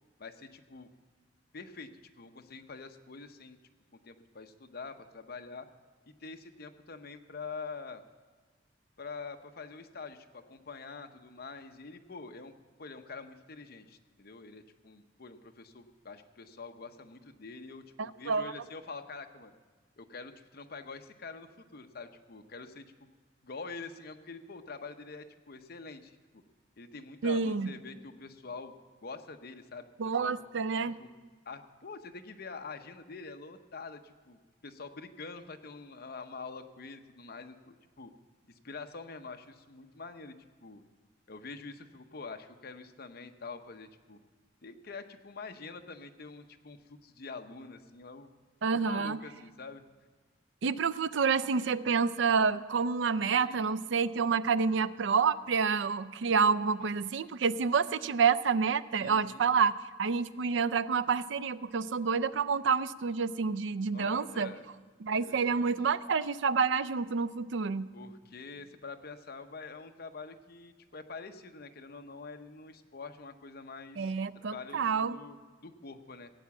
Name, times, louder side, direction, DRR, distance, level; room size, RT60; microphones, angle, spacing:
voice 1, 0.2-0.9 1.5-1.9 2.2-3.6 3.9-5.7 6.1-8.0 9.0-12.5 12.8-19.5 20.0-23.1 23.4-26.4 26.8-28.7 29.0-30.3 31.0-31.1 31.4-38.1 38.5-40.3 40.6-40.8 41.3-44.2 44.6-48.3 48.7-49.8 53.4-53.7 59.0-59.5 63.9-64.7 65.2-65.7 67.9-76.3, left 4 dB, 55° left, 7 dB, 0.8 m, -46 dB
voice 2, 18.0-18.5 27.2-27.7 30.0-31.0 48.6-49.2 50.6-64.5 65.0-67.9 74.0-75.2, right 5 dB, 85° right, 14 dB, 0.5 m, -28 dB
16.5 x 8.4 x 7.1 m, 1.4 s
head